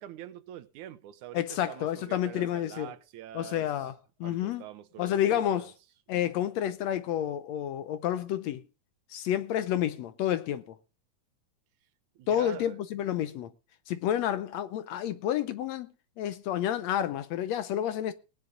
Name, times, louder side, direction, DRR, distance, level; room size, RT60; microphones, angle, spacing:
voice 1, 0.0-3.9 4.2-5.7 6.1-6.2 12.2-12.8, right 11 dB, 80° right, 2.4 m, -45 dB
voice 2, 1.3-2.9 3.3-4.6 5.0-5.7 6.1-8.6 9.1-10.8 12.3-13.5 13.9-15.9 16.2-18.1, left 11 dB, 70° left, 1.8 m, -30 dB
19.0 x 9.9 x 3.9 m
omnidirectional pair, 3.4 m